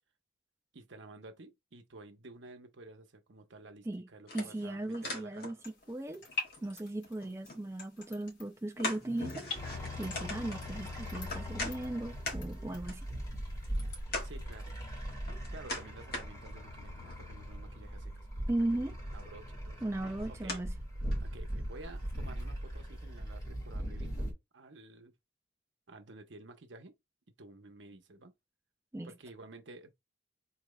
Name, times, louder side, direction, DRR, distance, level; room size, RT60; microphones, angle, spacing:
voice 1, 0.7-5.6 14.2-14.8 15.5-18.3 18.7-19.8 20.4-20.6 21.2-25.1 25.9-26.9 27.4-28.3 29.0-29.9, right 2 dB, 75° right, 0.9 m, -52 dB
sound 1, 4.3-5.9 6.2-7.7 8.1-8.2 8.8-11.7 12.2-12.4 12.9-13.0 13.6-13.7 14.1-14.3 14.9-16.3 16.8-17.3 18.6-18.8 19.1-19.5 20.0-20.6 21.1-21.2 21.9-22.0, left 2 dB, 50° left, 1.5 m, -41 dB
voice 2, 4.3-5.6 5.9-6.3 6.6-9.5 10.0-13.1 18.5-19.0 19.8-20.7 28.9-29.1, right 1 dB, 15° right, 0.4 m, -37 dB
sound 2, 5.6-14.0, left 4 dB, 75° left, 2.7 m, -47 dB
sound 3, 9.5-24.3, equal, 20° left, 1.7 m, -40 dB
4.5 x 3.2 x 2.3 m
head